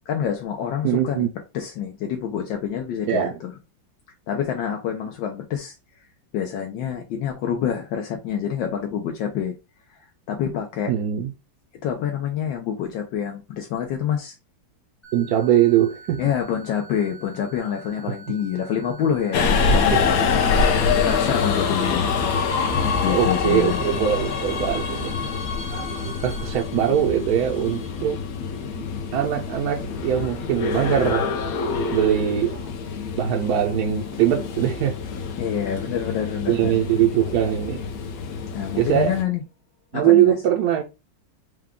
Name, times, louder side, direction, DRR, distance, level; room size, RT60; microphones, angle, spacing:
voice 1, 0.1-1.3 1.5-3.5 4.3-5.7 6.3-9.5 10.3-10.9 11.8-14.3 16.2-20.4 21.0-22.3 23.0-23.8 35.4-36.7 38.5-39.4 39.9-40.4, left 8 dB, 80° left, 1.4 m, -27 dB
voice 2, 0.8-1.3 3.1-3.4 10.9-11.3 15.1-16.2 18.1-18.2 19.9-20.0 23.1-25.3 25.7-28.2 28.7-28.8 29.1-31.3 31.9-32.7 33.2-35.0 36.5-37.9 38.8-39.1 39.9-40.8, right 10 dB, 70° right, 0.9 m, -22 dB
sound 1, 15.0-26.5, right 4 dB, 20° left, 0.8 m, -45 dB
Subway metro underground, 19.3-39.2, left 5 dB, 65° left, 1.0 m, -25 dB
4.8 x 2.3 x 3.5 m
omnidirectional pair, 2.0 m